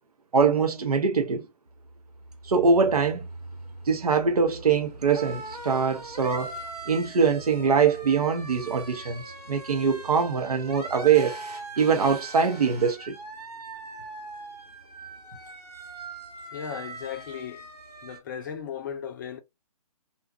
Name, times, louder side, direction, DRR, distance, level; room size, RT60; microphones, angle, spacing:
voice 1, 0.3-1.5 2.4-3.3 3.9-6.6 6.9-9.2 9.5-11.4 11.8-13.2, right 5 dB, 70° right, 0.6 m, -23 dB
sound 1, 1.8-18.2, right 2 dB, 90° right, 1.4 m, -41 dB
voice 2, 16.5-17.7 18.0-19.4, left 8 dB, 30° left, 0.5 m, -36 dB
2.6 x 2.3 x 2.3 m
figure-of-eight pair, 130°, 20 cm